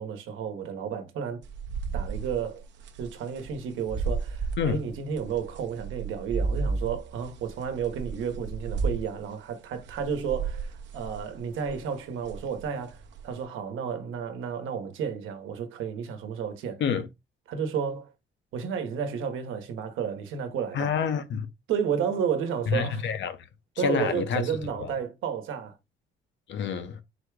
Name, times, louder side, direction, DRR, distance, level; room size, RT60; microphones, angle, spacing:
voice 1, 0.0-1.5 1.9-2.6 3.0-16.8 17.5-18.1 18.5-20.9 21.7-23.0 23.8-25.8, right 7 dB, 85° right, 1.0 m, -32 dB
sound 1, 1.4-9.2 9.8-12.0 12.2-13.4, right 4 dB, 65° right, 0.6 m, -33 dB
voice 2, 20.7-21.5 22.7-23.4 23.8-24.5 24.8-24.9 26.5-27.0, left 7 dB, 65° left, 0.8 m, -28 dB
4.3 x 2.3 x 4.6 m
cardioid pair, 90°, 20 cm